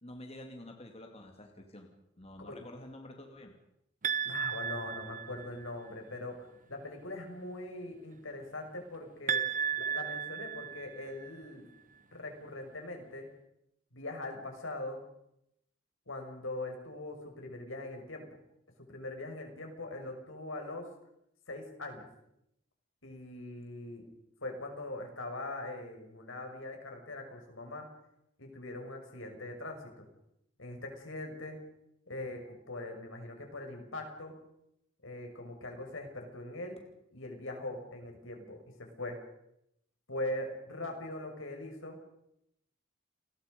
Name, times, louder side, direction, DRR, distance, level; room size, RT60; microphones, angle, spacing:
voice 1, 0.0-1.9 2.2-3.5, left 1 dB, 30° left, 3 dB, 2.6 m, -48 dB
sound 1, 4.0-5.7 9.3-11.3, right 7 dB, 40° right, 1.0 m, -34 dB
voice 2, 4.2-9.4 9.7-11.6 12.1-13.3 13.9-15.0 16.1-18.2 18.9-20.8 21.5-22.1 23.0-24.0 24.4-27.9 28.4-30.1 30.6-31.6 32.1-34.4 35.0-36.8 37.1-39.2 40.1-42.0, left 2 dB, 80° left, 3 dB, 6.1 m, -41 dB
29.5 x 20.5 x 5.3 m, 0.80 s
head